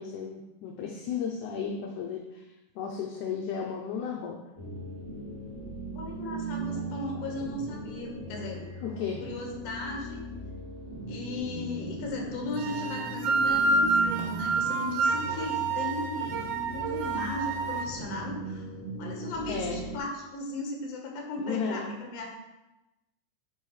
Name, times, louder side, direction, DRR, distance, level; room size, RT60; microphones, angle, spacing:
voice 1, 0.0-2.4 2.8-4.4 8.8-9.2 19.5-19.8 21.4-21.9, left 6 dB, 75° left, 0 dB, 1.9 m, -34 dB
sound 1, 4.6-20.0, right 2 dB, 20° left, 0.8 m, -39 dB
voice 2, 5.9-8.6 9.2-10.2 11.1-16.4 16.7-18.6 19.0-22.3, left 2 dB, 60° left, 1 dB, 2.1 m, -36 dB
sound 2, 12.6-17.9, right 3 dB, 75° right, 2.0 m, -28 dB
9.0 x 5.4 x 3.2 m, 0.97 s
omnidirectional pair, 3.8 m